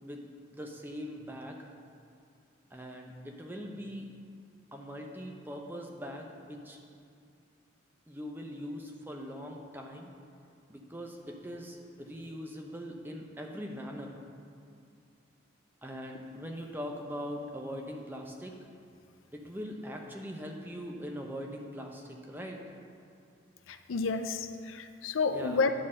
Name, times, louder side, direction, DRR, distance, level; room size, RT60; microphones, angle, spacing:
voice 1, 0.0-1.7 2.7-4.1 4.7-6.8 8.1-10.1 10.7-14.2 15.8-18.6 19.3-22.7 25.3-25.6, equal, 10° right, 2 dB, 0.7 m, -41 dB
voice 2, 23.7-25.7, left 4 dB, 90° left, 9 dB, 0.5 m, -30 dB
9.9 x 4.0 x 7.5 m, 2.4 s
head